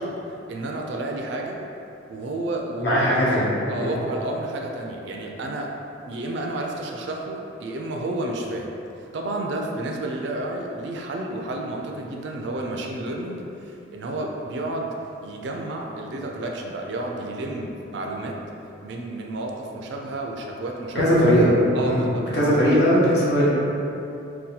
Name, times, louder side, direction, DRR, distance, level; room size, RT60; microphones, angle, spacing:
voice 1, 0.0-1.6 2.1-3.0 3.7-5.7 6.0-8.7 9.1-14.9 15.2-18.4 18.8-21.2 21.7-22.9, right 2 dB, 60° right, 1 dB, 0.3 m, -31 dB
voice 2, 2.8-3.5 3.8-3.9 20.9-21.5 21.8-23.5, equal, 55° left, -7 dB, 0.8 m, -19 dB
2.7 x 2.2 x 3.9 m, 2.8 s
head